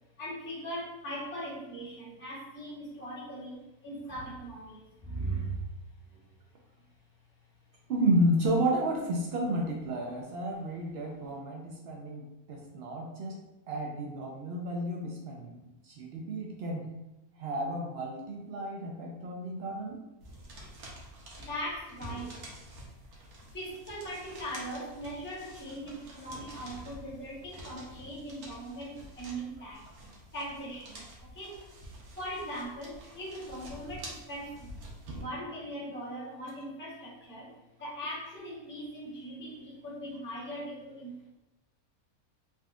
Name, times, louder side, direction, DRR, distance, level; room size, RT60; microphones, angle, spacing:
voice 1, 0.2-3.5 3.8-5.5 21.5-22.3 23.5-29.8 30.3-31.0 31.3-31.5 32.2-34.5 35.1-37.5 37.8-41.3, right 1 dB, 10° left, -6 dB, 0.5 m, -39 dB
voice 2, 7.9-13.4 13.7-16.8 17.4-20.0, right 1 dB, 70° right, -1 dB, 0.6 m, -31 dB
sound 1, 20.2-35.2, right 1 dB, 90° right, 1.2 m, -48 dB
3.5 x 2.6 x 2.3 m, 0.97 s
omnidirectional pair, 1.5 m